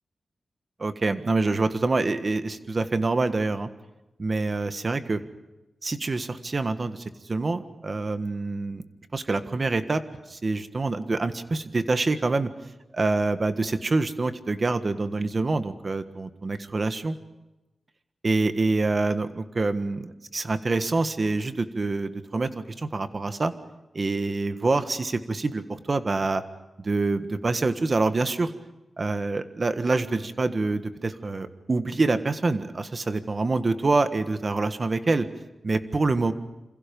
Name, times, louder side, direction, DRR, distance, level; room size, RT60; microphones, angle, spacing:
voice 1, 0.8-3.7 4.2-5.2 5.8-8.8 9.1-10.0 10.3-12.5 12.9-17.2 18.2-22.5 22.8-23.5 23.9-26.4 26.8-28.5 29.0-35.3 35.6-36.3, right 3 dB, 35° right, 10 dB, 1.5 m, -26 dB
28.0 x 27.0 x 5.4 m, 1.0 s
wide cardioid pair, 170°, 0 cm